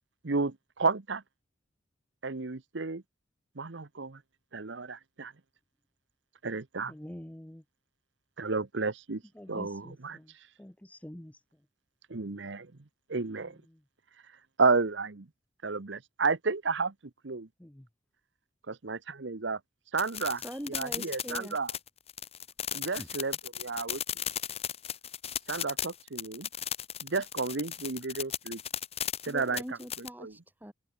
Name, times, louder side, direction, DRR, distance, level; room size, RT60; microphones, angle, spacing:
voice 1, 0.2-1.2 2.2-3.0 3.6-4.2 4.5-5.3 6.4-6.9 8.4-9.2 9.5-10.2 12.1-12.7 13.1-13.6 14.6-15.2 15.6-16.9 17.2-17.5 18.7-19.6 19.9-20.4 20.7-21.7 22.7-24.0 25.5-26.5 27.0-28.6 29.2-29.6 30.2-30.3, right 4 dB, 65° right, 1.0 m, -31 dB
voice 2, 6.9-7.6 9.4-10.3 10.6-11.4 13.4-13.5 17.6-17.9 20.5-20.6, equal, 5° left, 0.6 m, -46 dB
sound 1, 20.0-30.1, left 9 dB, 30° left, 1.5 m, -36 dB
voice 3, 20.4-21.6 22.9-23.1 29.3-30.7, equal, 10° right, 3.5 m, -42 dB
head